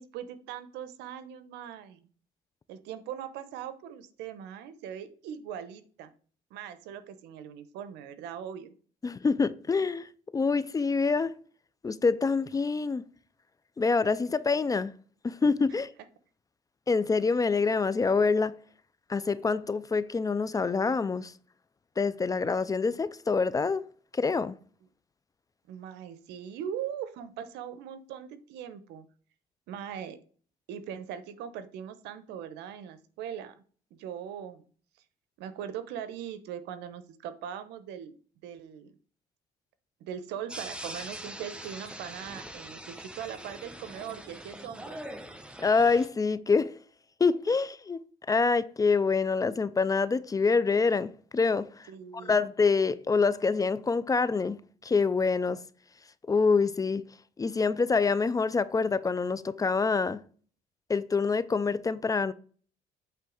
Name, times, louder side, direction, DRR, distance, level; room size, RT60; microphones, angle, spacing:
voice 1, 0.0-2.1 2.7-6.1 6.5-8.7 15.7-15.8 25.7-29.1 29.7-30.2 30.7-33.5 33.9-34.6 35.4-38.1 38.4-38.9 40.0-45.0 51.9-52.4, right 9 dB, 90° right, 0.9 m, -40 dB
voice 2, 9.0-10.1 10.3-11.3 11.8-13.1 13.8-14.9 15.2-15.9 16.9-18.5 19.1-21.3 22.0-23.9 24.1-24.6 45.6-46.7 47.2-48.0 48.3-51.9 52.1-55.6 56.3-57.1 57.4-60.2 60.9-62.3, left 4 dB, 20° left, 0.4 m, -26 dB
sound 1, 40.5-46.1, right 1 dB, 5° right, 1.0 m, -43 dB
8.2 x 3.3 x 6.3 m
cardioid pair, 110°, 17 cm